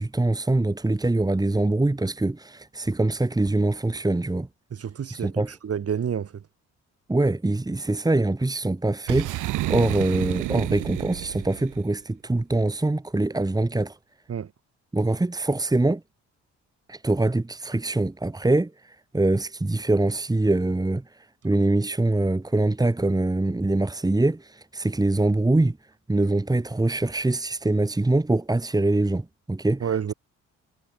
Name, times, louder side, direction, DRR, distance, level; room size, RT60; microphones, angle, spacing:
voice 1, 0.0-4.5 5.1-5.5 7.1-14.0 14.9-16.0 16.9-21.0 21.4-25.8 26.1-29.9, right 2 dB, 10° right, 2.7 m, -24 dB
voice 2, 4.7-5.3 5.6-6.4 14.3-14.5 29.8-30.1, right 8 dB, 50° right, 5.6 m, -28 dB
Boom, 9.1-11.8, right 16 dB, 80° right, 0.9 m, -30 dB
cardioid pair, 90°, 30 cm